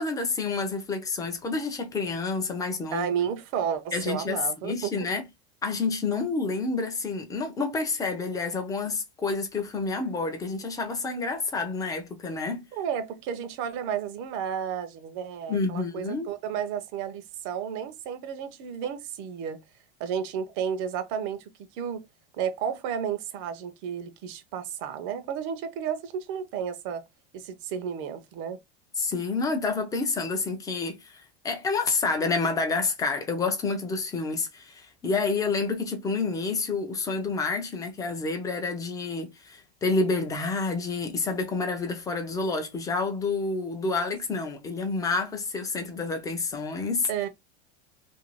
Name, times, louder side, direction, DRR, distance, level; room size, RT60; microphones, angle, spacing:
voice 1, 0.0-3.1 3.9-5.2 5.6-12.6 15.5-16.3 29.0-47.1, left 4 dB, 10° left, 0.5 m, -29 dB
voice 2, 2.9-5.1 12.7-19.6 20.0-22.0 22.4-27.0 27.3-28.6 47.1-47.3, right 8 dB, 40° right, 0.6 m, -32 dB
2.7 x 2.6 x 3.1 m
supercardioid pair, 155°, 31 cm